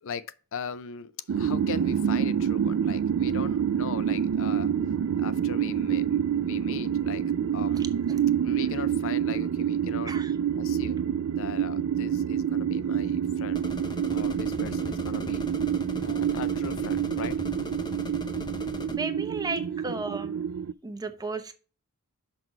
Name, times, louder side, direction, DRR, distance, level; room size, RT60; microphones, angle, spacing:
voice 1, 0.0-4.7 5.2-7.2 7.5-10.1 10.5-11.1 11.3-15.4 16.0-17.4 19.8-19.9, left 6 dB, 60° left, 0.5 m, -40 dB
sound 1, 1.3-20.7, right 8 dB, 65° right, 0.3 m, -27 dB
sound 2, 13.5-19.0, left 1 dB, 20° left, 0.7 m, -39 dB
voice 2, 18.9-20.4 20.8-21.5, right 3 dB, 15° right, 0.8 m, -34 dB
5.9 x 5.9 x 4.5 m
head